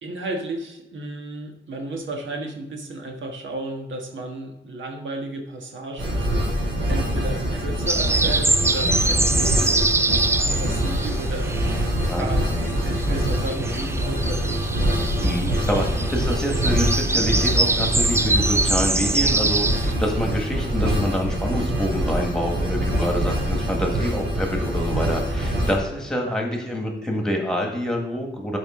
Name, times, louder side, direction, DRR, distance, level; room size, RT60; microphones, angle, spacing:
voice 1, 0.0-6.3 6.9-9.9 10.4-11.6 12.1-14.5, right 2 dB, 90° right, 2 dB, 1.5 m, -33 dB
sound 1, 6.0-25.7, equal, 75° right, 3.1 m, -24 dB
sound 2, 7.9-12.2 12.5-19.9, right 2 dB, 15° right, 0.4 m, -24 dB
voice 2, 15.2-28.6, equal, 5° left, 1 dB, 1.7 m, -26 dB
12.5 x 5.1 x 3.7 m, 0.95 s
wide cardioid pair, 150°, 19 cm